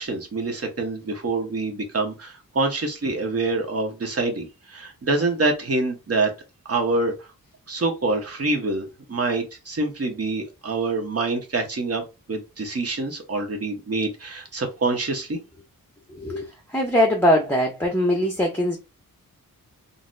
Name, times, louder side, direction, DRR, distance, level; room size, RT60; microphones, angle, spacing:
voice 1, 0.0-6.3 6.7-7.1 7.7-12.0 12.3-15.4, right 3 dB, 40° right, 1.0 m, -26 dB
voice 2, 16.1-18.8, equal, 5° left, 0.6 m, -21 dB
3.9 x 2.0 x 2.5 m
wide cardioid pair, 85°, 36 cm